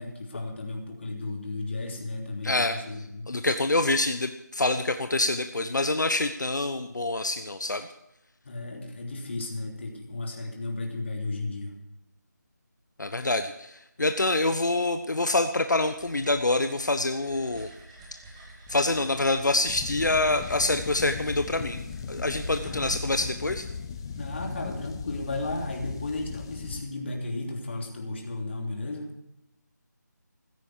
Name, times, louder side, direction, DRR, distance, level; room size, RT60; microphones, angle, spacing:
voice 1, 0.0-3.3 8.4-11.7 22.6-22.9 24.2-29.1, left 2 dB, 40° left, 1 dB, 3.2 m, -34 dB
voice 2, 2.4-2.7 3.3-7.9 13.0-17.7 18.7-21.8 22.1-23.7, left 2 dB, 75° left, 8 dB, 1.1 m, -26 dB
sound 1, 15.5-24.2, right 1 dB, 15° right, 2.9 m, -46 dB
sound 2, 19.7-26.8, left 6 dB, 15° left, 0.8 m, -38 dB
15.0 x 15.0 x 4.9 m, 0.86 s
figure-of-eight pair, 165°, 10 cm